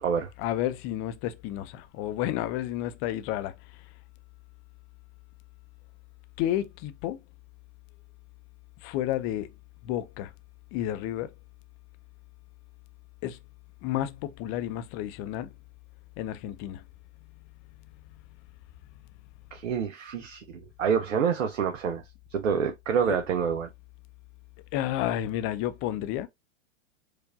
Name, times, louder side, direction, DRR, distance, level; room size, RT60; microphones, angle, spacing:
voice 1, 0.4-3.5 6.4-7.2 8.8-9.5 9.8-10.3 10.7-11.3 13.2-13.4 13.8-15.5 16.2-16.8 23.0-23.2 24.7-26.3, left 12 dB, 35° left, 0.6 m, -31 dB
voice 2, 19.5-22.0 22.3-23.7, right 7 dB, 80° right, 0.8 m, -27 dB
4.6 x 2.6 x 2.4 m
hypercardioid pair, 110°, 37 cm